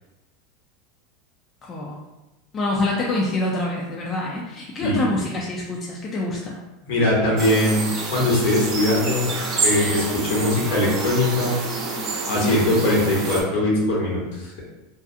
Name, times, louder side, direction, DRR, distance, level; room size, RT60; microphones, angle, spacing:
voice 1, 1.6-2.1 2.5-6.6 12.4-12.6, left 2 dB, 35° left, -3 dB, 0.4 m, -26 dB
voice 2, 6.8-9.3 9.6-11.5 12.3-14.6, left 1 dB, 70° left, -4 dB, 1.0 m, -21 dB
sound 1, 7.4-13.4, right 3 dB, 45° right, 0.7 m, -28 dB
2.5 x 2.3 x 2.6 m, 1.0 s
hypercardioid pair, 100°, 0 cm